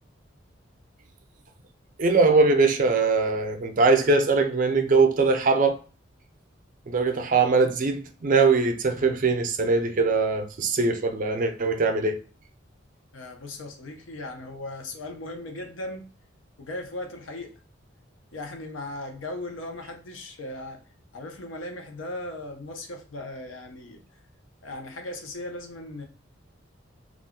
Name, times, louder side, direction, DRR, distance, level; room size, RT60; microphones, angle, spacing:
voice 1, 2.0-5.8 6.9-12.2, right 3 dB, 45° right, 0.4 m, -21 dB
voice 2, 13.1-16.1 16.6-17.6 18.3-20.8 21.1-24.0 24.6-26.0, left 2 dB, 85° left, 0.7 m, -37 dB
2.4 x 2.2 x 3.6 m
head